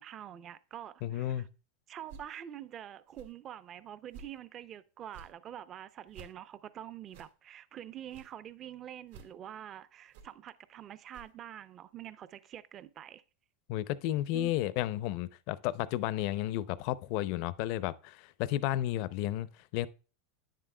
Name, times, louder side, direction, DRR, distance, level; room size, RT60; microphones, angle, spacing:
voice 1, 0.0-1.5 1.9-13.2 14.3-14.5, right 11 dB, 35° right, 0.5 m, -46 dB
voice 2, 1.0-1.5 13.7-19.9, left 14 dB, 55° left, 0.5 m, -32 dB
sound 1, 2.1-2.3 3.1-3.3 4.1-4.4 5.1-5.3 6.1-6.3 7.1-7.3 8.1-8.3 9.1-9.3 10.1-10.3 11.1-11.3, right 5 dB, 80° right, 2.0 m, -52 dB
9.5 x 7.6 x 2.2 m
supercardioid pair, 135°, 0 cm